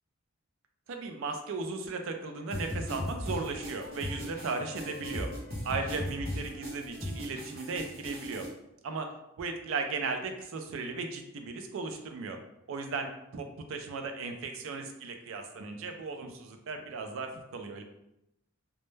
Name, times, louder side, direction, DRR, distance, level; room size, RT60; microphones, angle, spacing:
voice 1, 0.9-5.3 5.6-8.5 8.8-9.1 9.4-12.4 12.7-17.8, right 4 dB, 65° right, 5 dB, 0.3 m, -36 dB
Wind instrument woodwind instrument, 1.8-8.2, left 5 dB, 80° left, 0.3 m, -53 dB
sound 1, 2.5-8.5, equal, 45° right, 0.9 m, -37 dB
2.1 x 2.0 x 3.1 m, 0.85 s
head